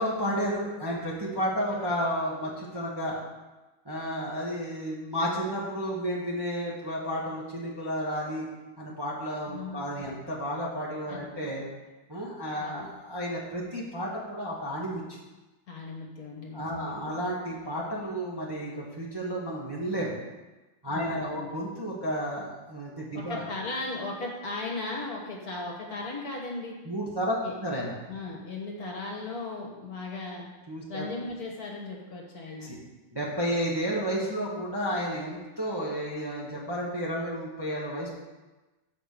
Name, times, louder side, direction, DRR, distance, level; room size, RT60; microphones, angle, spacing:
voice 1, 0.0-3.2 3.8-8.5 8.8-11.6 12.1-15.0 16.5-20.2 20.8-23.4 26.8-27.4 27.6-27.9 30.7-31.1 32.5-32.8 33.1-38.1, equal, 15° right, -4 dB, 1.2 m, -32 dB
voice 2, 1.4-1.8 9.5-10.0 11.1-11.2 11.5-11.6 12.6-12.9 15.7-17.1 20.9-21.5 23.1-26.8 27.4-27.5 28.1-30.5 30.9-32.7, left 3 dB, 55° left, -1 dB, 1.8 m, -37 dB
7.7 x 5.1 x 6.6 m, 1.1 s
omnidirectional pair, 2.1 m